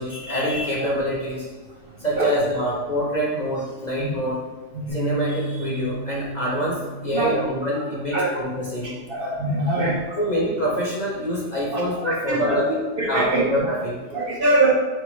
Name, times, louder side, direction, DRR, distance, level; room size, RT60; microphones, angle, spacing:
voice 1, 0.0-1.5 2.0-4.4 4.9-9.0 10.2-12.7 13.1-14.0, equal, 40° left, -5 dB, 0.7 m, -25 dB
Bass guitar, 4.9-11.1, right 2 dB, 65° left, 0.4 m, -35 dB
voice 2, 7.1-7.4 8.1-8.3 9.1-10.0 11.7-12.6 13.0-13.4 14.1-14.7, right 2 dB, 50° right, -4 dB, 0.8 m, -22 dB
4.3 x 3.3 x 3.1 m, 1.2 s
omnidirectional pair, 1.3 m